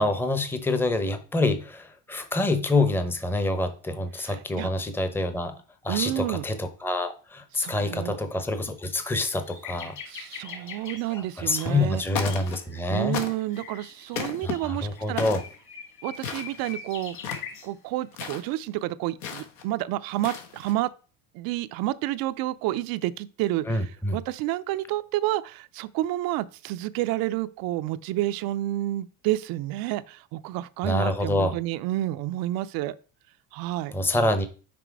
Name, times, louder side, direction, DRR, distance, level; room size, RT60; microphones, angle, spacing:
voice 1, 0.0-5.5 5.8-9.9 11.1-13.2 14.4-15.4 23.7-24.2 30.8-31.5 33.9-34.5, left 2 dB, 5° left, 0.7 m, -26 dB
voice 2, 4.2-4.7 5.9-6.4 7.5-8.2 10.1-12.0 12.9-15.2 16.0-17.2 17.6-20.9 21.3-32.9 33.5-33.9, right 15 dB, 60° right, 0.6 m, -30 dB
sound 1, 7.8-8.0 8.4-8.5 8.9-17.7 18.5-18.6, left 6 dB, 45° left, 2.0 m, -44 dB
sound 2, 11.5-11.9 12.1-12.8 13.1-13.6 14.1-14.5 15.2-15.5 16.1-16.8 17.1-17.6 18.1-18.4 19.2-19.6 20.1-20.7, left 7 dB, 80° left, 1.5 m, -34 dB
6.1 x 4.4 x 4.6 m
supercardioid pair, 120°, 41 cm